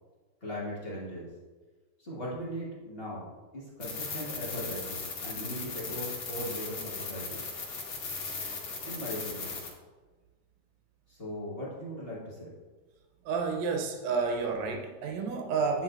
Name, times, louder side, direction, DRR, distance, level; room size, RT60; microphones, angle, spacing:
voice 1, 0.4-1.3 2.0-3.3 3.5-7.4 8.8-9.6 11.1-12.5, equal, 40° left, -7 dB, 0.8 m, -39 dB
sound 1, 3.8-9.7, left 4 dB, 55° left, 2.3 m, -37 dB
voice 2, 13.3-15.8, right 5 dB, 70° right, 3 dB, 1.8 m, -30 dB
9.4 x 5.7 x 2.6 m, 1.3 s
omnidirectional pair, 3.8 m